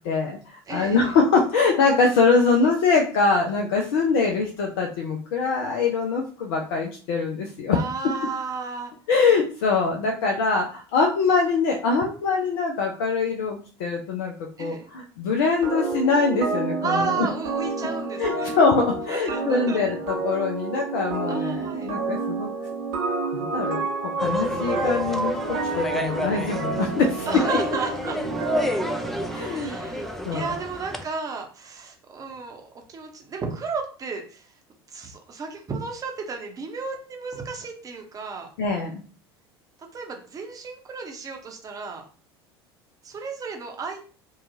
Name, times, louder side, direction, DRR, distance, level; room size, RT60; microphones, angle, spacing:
voice 1, 0.0-7.8 9.1-17.3 18.2-22.5 23.3-27.3 29.3-29.7 30.3-30.5 38.6-39.0, left 4 dB, 60° left, 0 dB, 0.5 m, -23 dB
voice 2, 0.7-1.1 7.7-8.9 14.6-14.9 16.8-18.6 19.1-19.8 21.3-21.9 27.3-28.2 29.5-34.5 34.9-38.5 39.9-42.1 43.0-44.0, right 4 dB, 25° right, 2 dB, 0.8 m, -33 dB
sound 1, 15.6-30.2, right 3 dB, 55° right, 0.8 m, -30 dB
sound 2, 24.2-31.0, left 1 dB, ahead, 0.4 m, -30 dB
2.7 x 2.3 x 2.6 m, 0.39 s
figure-of-eight pair, 70°, 13 cm